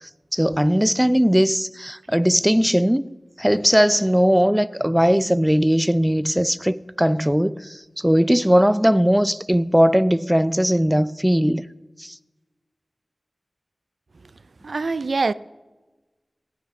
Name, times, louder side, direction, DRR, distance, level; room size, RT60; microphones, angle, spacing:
voice 1, 0.3-3.0 3.4-11.6 12.0-12.1, equal, 5° right, 0.4 m, -19 dB
voice 2, 14.6-15.3, right 3 dB, 70° right, 0.4 m, -23 dB
18.0 x 9.9 x 5.3 m
wide cardioid pair, 80°, 0 cm